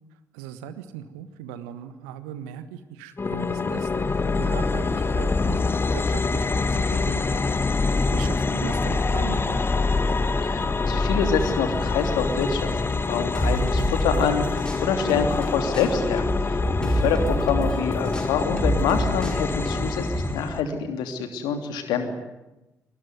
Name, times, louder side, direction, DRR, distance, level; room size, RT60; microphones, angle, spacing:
voice 1, 0.3-7.4 7.9-9.6, right 10 dB, 70° right, 11 dB, 1.6 m, -39 dB
sound 1, 3.2-20.6, left 3 dB, 30° left, 1.6 m, -25 dB
voice 2, 10.4-22.1, left 6 dB, 65° left, 6 dB, 3.0 m, -26 dB
sound 2, 13.3-15.5 15.7-20.3, right 1 dB, 10° left, 5.6 m, -28 dB
25.0 x 20.5 x 9.6 m, 1.0 s
figure-of-eight pair, 40°, 8 cm